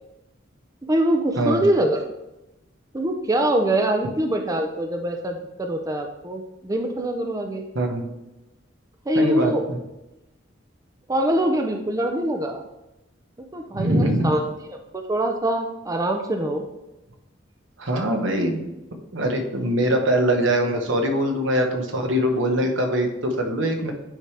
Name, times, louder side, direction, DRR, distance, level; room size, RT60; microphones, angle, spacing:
voice 1, 0.8-2.0 2.9-7.6 9.1-9.6 11.1-12.6 13.5-16.6, right 1 dB, 20° right, 4 dB, 0.5 m, -24 dB
voice 2, 7.7-8.1 9.1-9.8 13.7-14.3 17.8-18.6 19.1-23.9, equal, 75° right, 3 dB, 1.1 m, -22 dB
9.1 x 4.9 x 3.3 m, 0.98 s
head